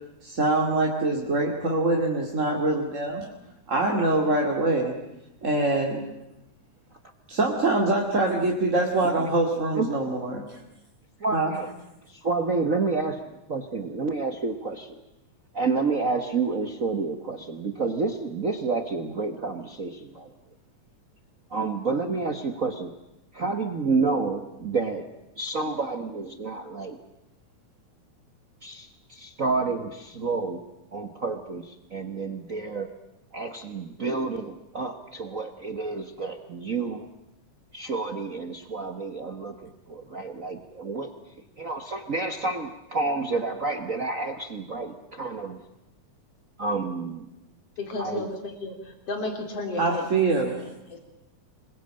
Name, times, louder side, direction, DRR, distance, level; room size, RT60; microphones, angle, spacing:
voice 1, 0.2-3.3 3.7-4.9 5.4-6.0 7.3-10.6 11.3-11.6 49.8-50.7, right 2 dB, 25° right, -1 dB, 2.4 m, -24 dB
voice 2, 9.7-10.1 11.2-11.7 12.1-15.0 15.5-20.3 21.5-22.9 23.3-25.0 25.4-27.0 28.6-30.6 30.9-32.9 33.3-37.1 37.7-41.1 41.6-45.6 46.6-47.3 48.0-48.3, right 4 dB, 60° right, 6 dB, 0.8 m, -29 dB
voice 3, 47.8-48.8 49.1-50.0 50.9-51.0, left 2 dB, 50° left, 4 dB, 4.6 m, -32 dB
26.5 x 21.0 x 8.8 m, 0.88 s
omnidirectional pair, 3.5 m